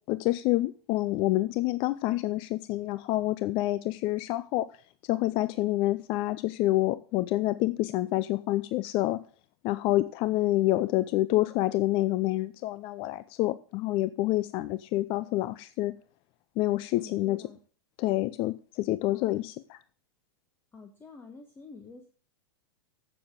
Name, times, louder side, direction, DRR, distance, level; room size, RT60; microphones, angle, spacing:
voice 1, 0.1-4.7 5.1-9.2 9.6-15.9 16.6-17.4 18.0-19.8, left 16 dB, 40° left, 15 dB, 0.5 m, -27 dB
voice 2, 17.0-17.6 19.0-19.4 20.7-22.1, left 4 dB, 15° left, 5 dB, 1.3 m, -48 dB
15.5 x 7.0 x 3.7 m, 0.42 s
hypercardioid pair, 100°, 14 cm